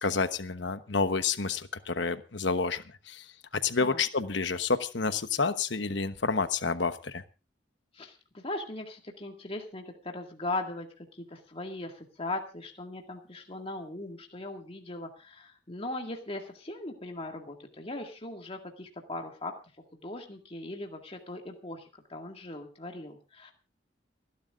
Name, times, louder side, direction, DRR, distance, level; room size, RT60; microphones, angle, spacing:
voice 1, 0.0-3.3 3.6-7.2, left 4 dB, 70° left, 10 dB, 1.1 m, -29 dB
voice 2, 7.9-19.5 19.9-23.5, left 2 dB, 30° left, 2 dB, 2.0 m, -39 dB
29.5 x 11.5 x 2.5 m, 0.30 s
head